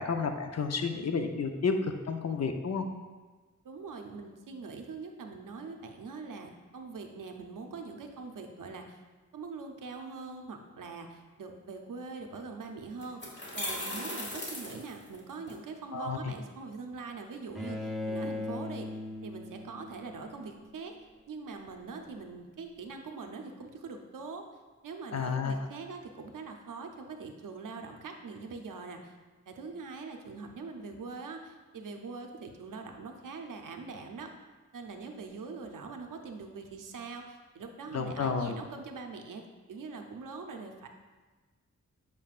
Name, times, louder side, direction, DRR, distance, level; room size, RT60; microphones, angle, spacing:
voice 1, 0.0-2.9 15.9-16.3 25.1-25.6 37.9-38.5, left 5 dB, 55° left, 5 dB, 0.6 m, -31 dB
voice 2, 3.6-9.0 9.3-18.9 19.2-20.9 21.3-24.5 24.8-29.1 29.5-34.3 34.7-39.4 39.7-40.9, right 4 dB, 90° right, 4 dB, 0.6 m, -43 dB
sound 1, 12.3-12.4 13.0-15.5, left 1 dB, 35° left, 1.3 m, -38 dB
Bowed string instrument, 17.5-20.6, left 2 dB, ahead, 0.7 m, -38 dB
7.4 x 5.3 x 2.4 m, 1.3 s
wide cardioid pair, 75°, 31 cm